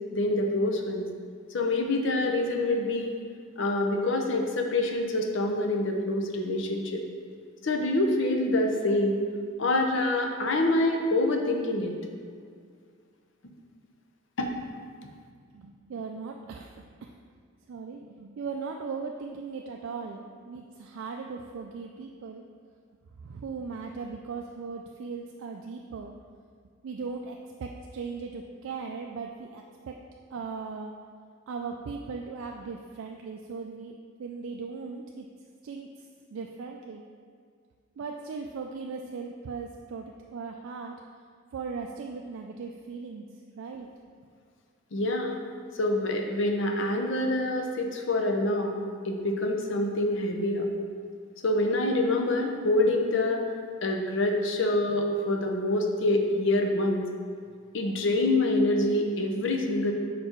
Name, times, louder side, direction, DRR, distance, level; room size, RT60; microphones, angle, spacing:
voice 1, 0.1-1.0 1.5-3.2 3.6-7.0 7.6-9.2 9.6-11.9 14.4-14.6 44.9-45.4 45.7-50.7 51.4-53.4 53.8-57.1 57.7-59.9, left 2 dB, 60° left, 2 dB, 0.6 m, -26 dB
voice 2, 15.5-17.1 17.7-22.4 23.2-26.1 26.8-29.9 30.3-30.9 31.5-33.9 34.2-35.3 35.6-35.9 36.3-37.0 38.0-40.9 41.5-43.2 43.6-43.9, right 5 dB, 70° right, 2 dB, 0.3 m, -38 dB
5.0 x 4.5 x 4.4 m, 2.1 s
head